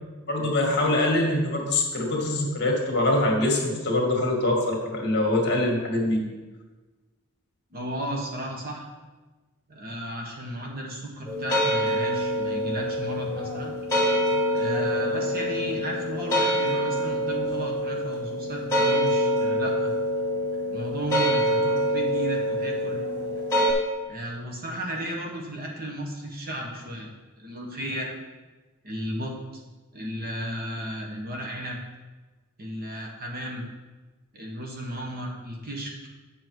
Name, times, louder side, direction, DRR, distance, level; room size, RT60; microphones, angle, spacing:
voice 1, 0.3-6.2, left 1 dB, 50° left, 0 dB, 1.8 m, -24 dB
voice 2, 7.7-8.8 9.7-13.7 14.5-20.0 20.7-23.0 24.1-27.1 27.4-28.1 28.8-29.3 29.9-31.8 32.6-33.7 34.3-35.9, right 1 dB, 45° right, 0 dB, 1.4 m, -34 dB
sound 1, 11.3-23.7, equal, 15° left, 2.2 m, -25 dB
8.2 x 6.2 x 4.7 m, 1.2 s
head